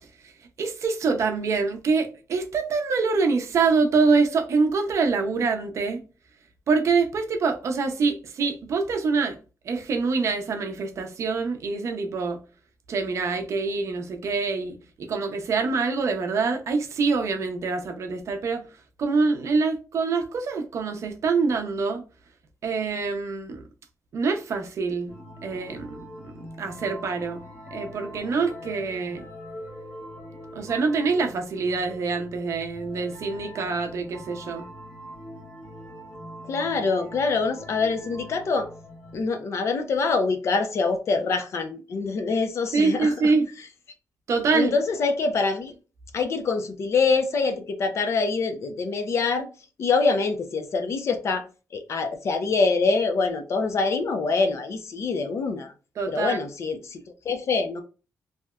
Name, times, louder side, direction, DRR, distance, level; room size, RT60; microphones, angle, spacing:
voice 1, 0.6-6.0 6.7-9.4 9.6-12.4 12.9-18.6 19.0-22.0 22.6-23.6 24.1-25.1 25.4-26.3 26.6-29.3 30.5-34.7 42.7-43.5 44.3-44.7 56.0-56.4, right 4 dB, 55° right, 0.5 m, -25 dB
sound 1, 25.1-39.2, equal, 35° left, 1.3 m, -43 dB
voice 2, 36.5-38.7 39.1-43.1 44.5-45.7 46.1-49.5 49.8-51.4 51.7-55.7 56.1-57.0 57.2-57.8, left 4 dB, 50° left, 0.5 m, -25 dB
3.2 x 2.8 x 2.3 m
wide cardioid pair, 170°, 6 cm